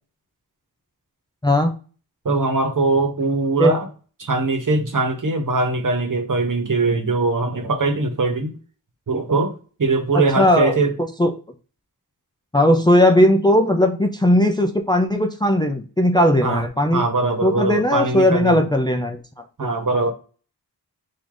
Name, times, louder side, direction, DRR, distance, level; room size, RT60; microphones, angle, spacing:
voice 1, 1.4-1.7 3.6-3.7 10.1-10.8 11.2-11.3 12.5-17.0 17.4-19.2 19.6-19.7, left 1 dB, 10° left, 0.5 m, -17 dB
voice 2, 2.2-3.9 4.2-8.5 9.1-10.9 16.4-16.6 16.9-18.6 19.6-20.1, right 3 dB, 50° right, 1.0 m, -21 dB
3.8 x 2.6 x 4.7 m
wide cardioid pair, 100°, 40 cm